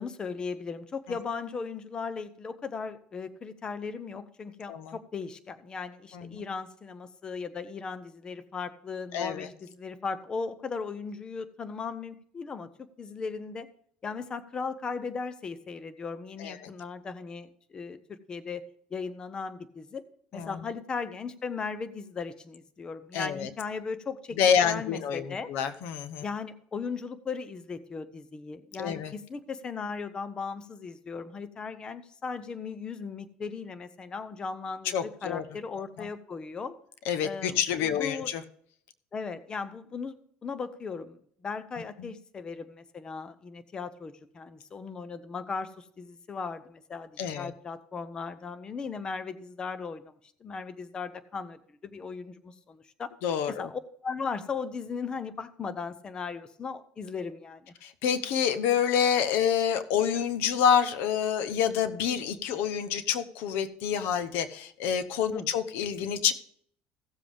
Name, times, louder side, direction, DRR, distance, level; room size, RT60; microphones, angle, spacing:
voice 1, 0.0-13.7 14.0-18.6 18.9-20.0 20.3-24.4 24.6-25.5 26.2-36.7 37.2-38.3 39.1-50.0 50.4-53.1 53.6-57.7 65.3-65.5, left 5 dB, 25° left, 12 dB, 0.7 m, -37 dB
voice 2, 9.1-9.5 16.4-16.7 20.3-20.6 23.1-23.5 24.4-26.2 28.8-29.1 34.8-35.4 36.0-36.1 37.1-38.4 42.0-42.1 47.2-47.5 53.2-53.7 57.8-66.3, left 8 dB, 80° left, 12 dB, 0.9 m, -27 dB
16.0 x 7.5 x 3.5 m, 0.63 s
cardioid pair, 145°, 4 cm